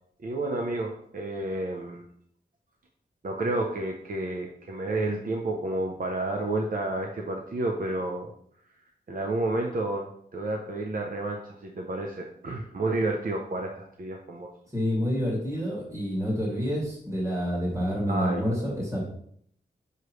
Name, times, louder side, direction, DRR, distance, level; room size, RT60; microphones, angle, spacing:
voice 1, 0.2-2.0 3.2-8.3 9.1-14.5 18.1-18.4, right 2 dB, 50° right, 1 dB, 0.7 m, -30 dB
voice 2, 14.7-19.0, equal, 15° right, -4 dB, 2.2 m, -28 dB
6.5 x 4.8 x 3.1 m, 0.65 s
wide cardioid pair, 115°, 18 cm